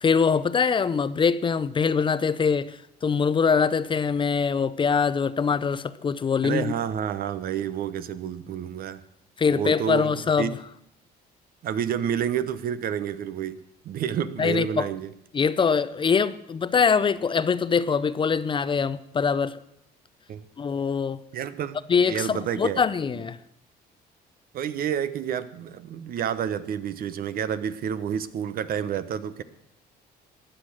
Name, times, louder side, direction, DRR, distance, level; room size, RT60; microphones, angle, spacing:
voice 1, 0.0-6.7 9.4-10.6 14.4-14.9 15.3-19.6 20.6-21.2 21.9-23.4, left 5 dB, 30° left, 0.6 m, -23 dB
voice 2, 6.4-9.0 9.5-10.6 11.6-13.6 13.8-15.1 20.3-20.4 21.3-22.8 24.5-29.4, right 8 dB, 60° right, 1.0 m, -29 dB
15.5 x 10.0 x 6.2 m
cardioid pair, 110°, 17 cm